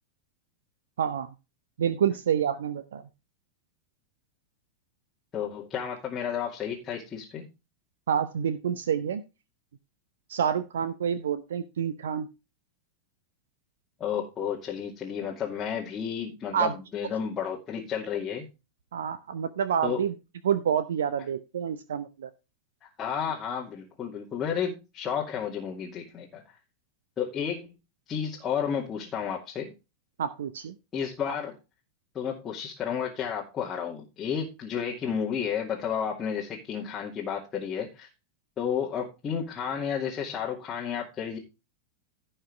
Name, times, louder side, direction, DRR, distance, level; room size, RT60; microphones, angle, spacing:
voice 1, 1.0-1.3 1.8-3.0 8.1-9.2 10.3-12.3 16.5-16.7 18.9-20.1 20.4-22.3 30.2-30.8, right 8 dB, 65° right, 13 dB, 0.8 m, -28 dB
voice 2, 5.3-7.5 14.0-18.5 19.8-20.0 23.0-26.4 27.2-27.7 28.1-29.7 30.9-31.5 32.1-38.1 38.6-41.4, left 7 dB, 25° left, -3 dB, 2.4 m, -32 dB
16.5 x 5.6 x 3.4 m, 0.27 s
figure-of-eight pair, 90°, 0 cm